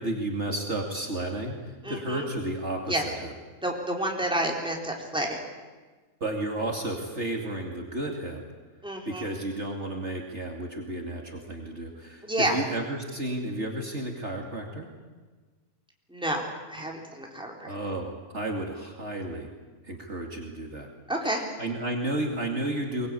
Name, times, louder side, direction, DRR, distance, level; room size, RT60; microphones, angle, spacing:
voice 1, 0.0-3.3 6.2-8.4 9.1-14.9 17.7-19.5 19.8-20.9 21.6-23.1, right 1 dB, 45° right, 1 dB, 2.8 m, -32 dB
voice 2, 1.8-2.3 2.9-3.0 3.6-5.4 8.8-9.3 12.2-12.6 16.1-17.7 21.1-21.4, right 1 dB, 5° right, 0 dB, 3.6 m, -29 dB
23.5 x 20.5 x 8.5 m, 1.4 s
omnidirectional pair, 1.6 m